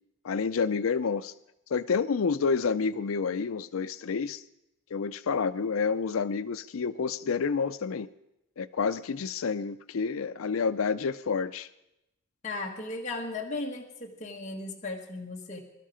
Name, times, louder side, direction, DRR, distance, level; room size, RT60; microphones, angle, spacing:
voice 1, 0.2-1.3 1.7-4.4 4.9-8.1 8.6-11.7, left 5 dB, 85° left, 0.5 m, -29 dB
voice 2, 12.4-15.6, left 2 dB, 35° left, 1.6 m, -36 dB
23.0 x 12.0 x 5.0 m
head